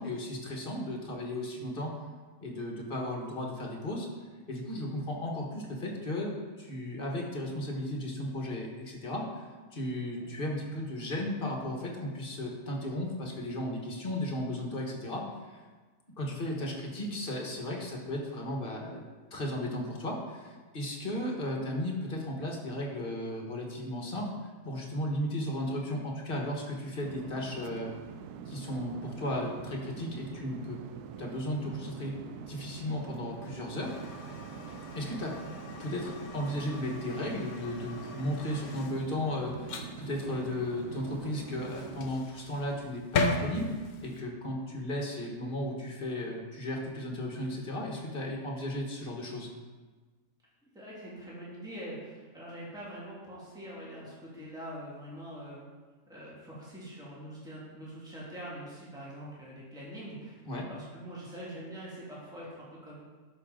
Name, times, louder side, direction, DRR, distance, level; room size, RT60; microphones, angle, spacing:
voice 1, 0.0-1.9 2.4-4.1 4.5-15.6 16.2-19.0 19.3-24.3 24.6-27.9 28.4-30.8 31.2-32.2 32.5-34.4 34.9-35.4 35.8-43.7 44.0-49.5 60.5-60.7, left 1 dB, 35° left, 0 dB, 1.6 m, -35 dB
sound 1, 27.0-42.2, right 7 dB, 85° right, 1.1 m, -45 dB
sound 2, 33.8-44.2, left 3 dB, 75° left, 1.3 m, -38 dB
voice 2, 50.6-55.6 56.1-60.4 60.7-62.9, equal, 5° right, -7 dB, 2.3 m, -44 dB
12.5 x 5.7 x 3.8 m, 1.4 s
omnidirectional pair, 1.6 m